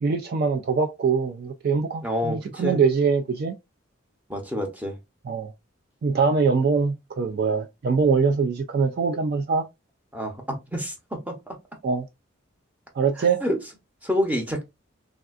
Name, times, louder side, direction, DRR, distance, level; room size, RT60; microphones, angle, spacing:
voice 1, 0.0-3.5 5.3-5.5 6.0-9.7 11.8-12.1 13.0-13.4, right 5 dB, 45° right, 0.3 m, -23 dB
voice 2, 2.0-2.8 4.3-5.0 10.1-11.5 13.2-13.6 14.0-14.6, equal, 5° right, 0.7 m, -28 dB
3.4 x 2.4 x 2.3 m
head